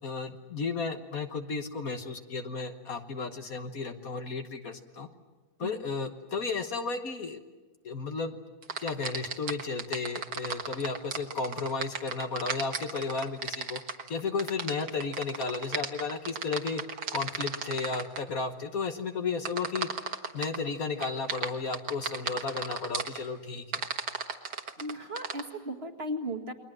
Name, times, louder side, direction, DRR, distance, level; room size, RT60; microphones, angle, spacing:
voice 1, 0.0-5.1 5.6-7.4 7.8-8.4 8.8-13.8 14.1-16.8 17.1-19.9 20.3-23.9, left 4 dB, 55° left, 6 dB, 1.6 m, -33 dB
sound 1, 8.6-18.2 19.5-20.6 21.0-23.2 23.7-25.4, right 5 dB, 65° right, 2.1 m, -34 dB
voice 2, 24.8-26.5, equal, 35° right, 2 dB, 2.0 m, -36 dB
29.5 x 22.0 x 7.5 m, 1.2 s
omnidirectional pair, 1.9 m